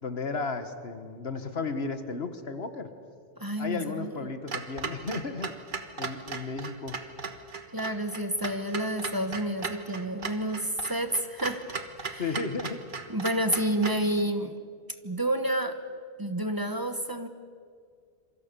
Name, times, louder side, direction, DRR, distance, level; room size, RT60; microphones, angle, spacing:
voice 1, 0.0-2.9 3.6-5.5 6.0-7.0 12.2-12.8, left 4 dB, 80° left, 9 dB, 1.8 m, -34 dB
voice 2, 3.4-4.1 7.7-12.3 13.1-14.6 15.0-15.8 16.2-17.3, right 1 dB, 20° right, 8 dB, 1.1 m, -29 dB
Clock, 4.5-14.1, right 4 dB, 55° right, 1.6 m, -37 dB
27.0 x 24.0 x 6.9 m, 2.1 s
omnidirectional pair, 1.0 m